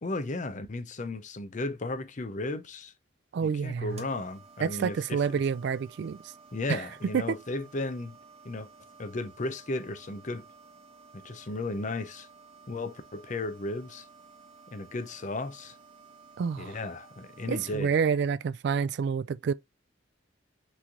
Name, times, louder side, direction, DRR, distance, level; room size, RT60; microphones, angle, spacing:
voice 1, 0.0-2.9 3.4-5.4 6.5-8.2 8.4-8.7 9.0-10.4 11.2-12.3 12.7-14.0 14.7-15.7 16.6-18.0, left 2 dB, 40° left, 0.6 m, -35 dB
voice 2, 3.3-4.0 4.6-6.2 6.7-6.8 7.1-7.3 16.4-16.8 17.5-19.5, right 6 dB, 65° right, 0.3 m, -28 dB
sound 1, 3.9-17.8, right 4 dB, 35° right, 1.2 m, -54 dB
5.9 x 3.2 x 2.6 m
head